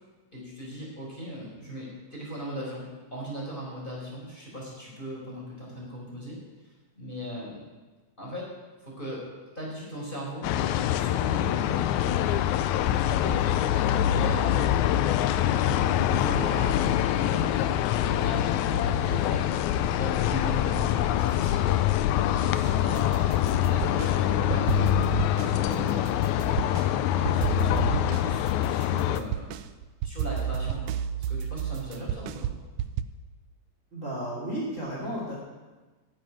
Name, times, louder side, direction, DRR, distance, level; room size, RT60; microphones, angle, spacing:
voice 1, 0.3-2.8 3.1-6.4 7.0-7.6 8.2-8.5 8.8-9.2 9.5-13.6 13.9-18.4 19.0-19.5 20.0-21.7 22.0-24.9 25.3-26.3 26.9-29.7 30.0-30.9 31.3-32.5, equal, 15° left, -4 dB, 4.5 m, -38 dB
sound 1, 10.4-29.2, left 12 dB, 80° left, 1.9 m, -25 dB
sound 2, 22.6-24.1 24.5-26.9 27.3-33.0, right 9 dB, 80° right, 1.7 m, -31 dB
voice 2, 33.9-35.3, right 1 dB, 25° right, -4 dB, 2.8 m, -33 dB
12.0 x 7.6 x 9.3 m, 1.2 s
omnidirectional pair, 3.4 m